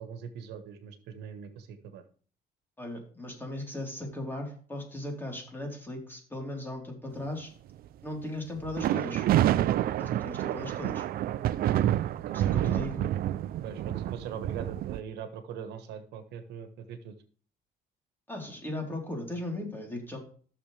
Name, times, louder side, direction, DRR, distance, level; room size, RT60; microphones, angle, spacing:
voice 1, 0.0-2.0 12.1-12.4 12.7-12.9 13.6-17.1, right 7 dB, 80° right, 9 dB, 1.4 m, -41 dB
voice 2, 2.8-7.5 8.0-9.3 10.0-11.1 12.3-13.0 18.3-20.2, left 1 dB, 10° left, 1 dB, 3.8 m, -37 dB
sound 1, 8.6-15.0, right 12 dB, 60° right, 0.5 m, -28 dB
14.5 x 6.9 x 3.4 m, 0.44 s
cardioid pair, 110°, 17 cm